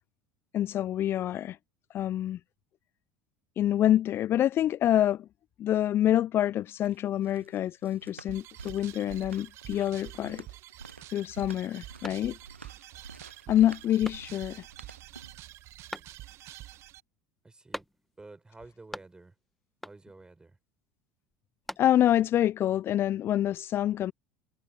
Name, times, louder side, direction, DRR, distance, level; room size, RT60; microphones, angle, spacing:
voice 1, 0.5-1.6 1.9-2.4 3.6-5.3 5.6-10.4 11.1-12.4 13.5-14.6 21.8-24.1, left 12 dB, 40° left, 0.5 m, -26 dB
sound 1, 6.6-15.5, right 4 dB, 90° right, 1.1 m, -49 dB
sound 2, 8.3-17.0, right 15 dB, 50° right, 1.5 m, -47 dB
sound 3, 15.9-16.5 17.7-18.3 18.6-19.4 19.8-20.3 21.3-22.2, left 1 dB, 5° left, 2.1 m, -44 dB
voice 2, 17.4-17.8 18.2-19.3 19.8-20.6, right 3 dB, 15° right, 6.5 m, -50 dB
figure-of-eight pair, 70°, 6 cm